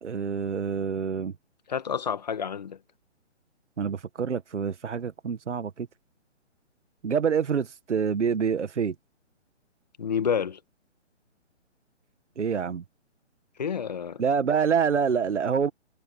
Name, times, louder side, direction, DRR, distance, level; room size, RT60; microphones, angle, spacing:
voice 1, 0.0-1.3 3.8-5.9 7.0-8.9 12.4-12.8 14.2-15.7, right 6 dB, 75° right, 1.7 m, -26 dB
voice 2, 1.7-2.8 10.0-10.6 13.6-14.2, left 7 dB, 35° left, 1.5 m, -29 dB
hypercardioid pair, 180°, 36 cm